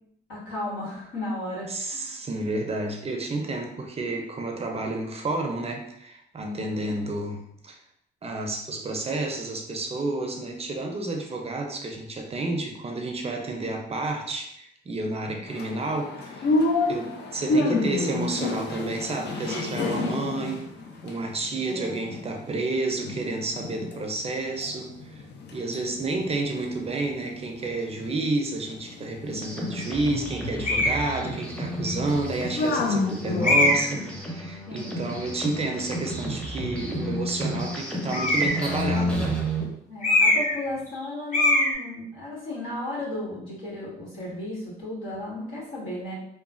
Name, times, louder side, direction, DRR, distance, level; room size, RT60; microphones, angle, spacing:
voice 1, 0.3-2.2 6.4-7.0 15.2-15.4 21.6-22.2 34.7-35.0 39.9-46.1, left 1 dB, 85° left, -7 dB, 1.4 m, -35 dB
voice 2, 1.7-7.8 8.2-16.5 16.9-20.6 21.0-25.3 25.5-39.4, right 2 dB, 30° right, 3 dB, 0.5 m, -30 dB
sound 1, 15.5-22.6 23.0-24.0 24.3-33.9, left 2 dB, 60° left, 0.5 m, -30 dB
sound 2, 29.2-39.6, equal, 5° left, 0.7 m, -32 dB
sound 3, 30.6-31.0 31.8-31.9 33.4-34.0 38.1-38.7 40.0-40.6 40.9-41.0 41.3-41.7, left 2 dB, 40° left, 1.1 m, -21 dB
3.0 x 2.2 x 2.5 m, 0.74 s
cardioid pair, 90°, 20 cm